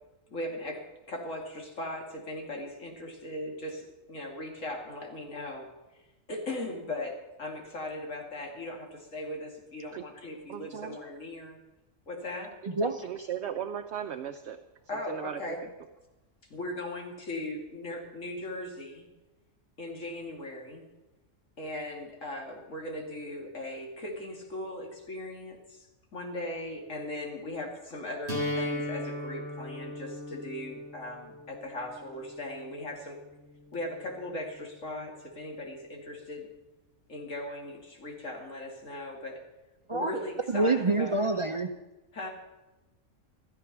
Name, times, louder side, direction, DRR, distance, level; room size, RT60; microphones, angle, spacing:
voice 1, 0.3-5.7 6.3-11.6 12.1-12.6 12.8-12.9 14.9-15.7 16.5-19.1 19.8-20.8 21.6-33.2 33.7-36.5 37.1-39.4 39.9-41.3 42.1-42.3, left 1 dB, 70° left, 0 dB, 2.8 m, -38 dB
voice 2, 10.5-11.0 13.0-14.6 15.1-15.4, right 9 dB, 65° right, 8 dB, 0.9 m, -36 dB
sound 1, 28.3-34.2, left 1 dB, 40° left, 4.1 m, -38 dB
voice 3, 40.5-41.7, right 2 dB, 40° right, 7 dB, 0.4 m, -26 dB
14.0 x 12.5 x 6.0 m, 1.0 s
omnidirectional pair, 1.4 m